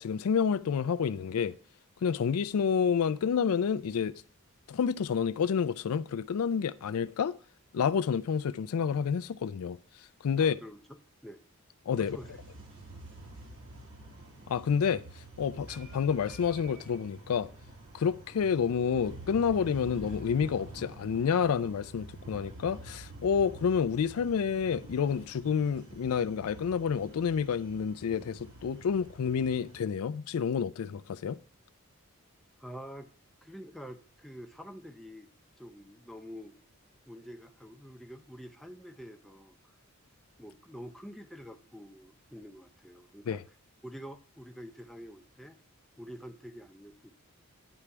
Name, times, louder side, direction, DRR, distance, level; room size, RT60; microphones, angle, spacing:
voice 1, 0.0-1.6 2.0-4.1 4.7-7.4 7.7-9.8 10.2-10.6 11.9-12.2 14.5-15.0 15.4-17.5 17.9-31.4 43.3-43.4, left 6 dB, 75° left, 0.4 m, -29 dB
voice 2, 10.4-11.4 12.0-12.3 32.6-33.1 33.4-35.3 35.6-36.6 37.1-39.6 40.4-43.4 43.8-45.6 46.0-47.1, equal, ahead, 0.4 m, -47 dB
sound 1, 11.9-29.9, right 2 dB, 60° right, 1.5 m, -48 dB
9.7 x 3.3 x 5.9 m
head